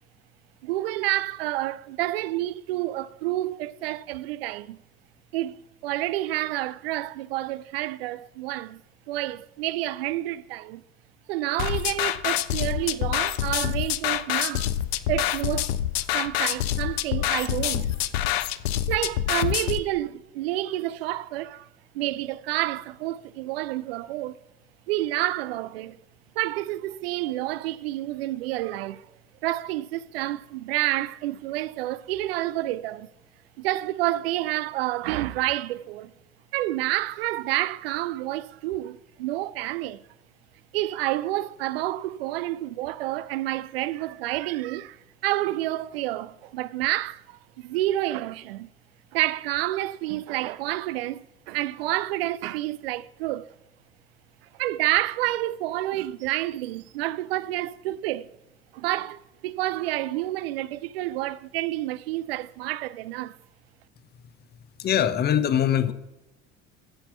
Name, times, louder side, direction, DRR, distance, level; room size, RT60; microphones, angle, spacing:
voice 1, 0.6-4.8 5.3-5.6 5.8-8.8 9.1-10.8 11.3-14.7 15.1-15.7 16.1-18.0 18.9-21.7 21.9-24.4 24.9-26.0 26.4-29.0 29.4-33.1 33.6-36.1 36.5-40.0 40.7-45.0 45.2-48.7 49.1-53.5 54.6-58.3 58.7-63.4, right 16 dB, 60° right, 0.5 m, -29 dB
sound 1, 11.6-19.8, left 12 dB, 65° left, 0.6 m, -26 dB
voice 2, 64.8-65.9, left 9 dB, 30° left, 0.7 m, -22 dB
14.5 x 5.8 x 4.3 m
figure-of-eight pair, 60°, 33 cm